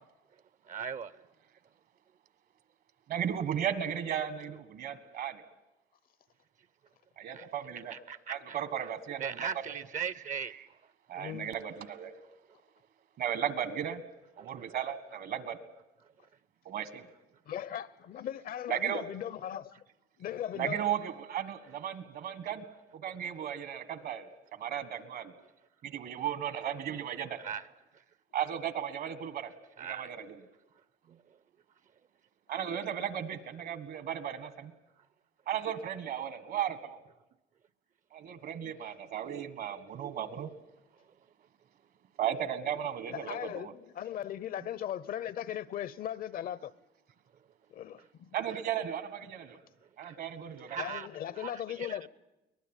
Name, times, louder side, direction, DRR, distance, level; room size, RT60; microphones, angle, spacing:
voice 1, 0.7-1.2 7.3-7.5 7.9-8.6 9.2-10.5 14.4-14.7 27.4-27.7 29.8-30.1 49.5-49.6 50.0-50.2 50.7-51.1 51.4-52.0, right 6 dB, 50° right, 0.7 m, -39 dB
voice 2, 3.1-5.4 7.2-7.9 8.3-9.5 11.1-12.1 13.2-14.0 14.4-15.6 16.6-17.0 18.7-19.1 20.6-22.6 22.9-24.3 24.6-25.3 25.8-27.4 28.3-29.5 29.8-30.4 32.5-34.7 35.5-37.0 38.1-40.5 42.2-43.7 48.3-49.6 50.0-50.8, right 9 dB, 65° right, 1.7 m, -35 dB
voice 3, 11.1-11.5 17.5-19.8 20.2-20.8 43.1-46.7 47.7-48.3 50.8-52.1, left 10 dB, 60° left, 0.8 m, -38 dB
23.0 x 19.5 x 9.1 m
cardioid pair, 110°, 17 cm